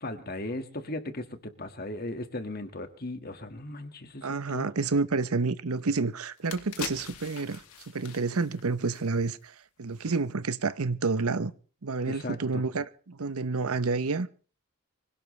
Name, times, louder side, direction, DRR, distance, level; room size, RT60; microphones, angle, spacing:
voice 1, 0.0-4.7 12.1-12.6, left 1 dB, 45° left, 1.9 m, -37 dB
voice 2, 4.2-7.6 7.9-11.5 11.8-14.3, right 4 dB, 85° right, 0.9 m, -29 dB
sound 1, 5.8-5.9 6.3-9.5 9.9-10.0, left 6 dB, 80° left, 2.3 m, -42 dB
25.0 x 17.0 x 3.3 m
head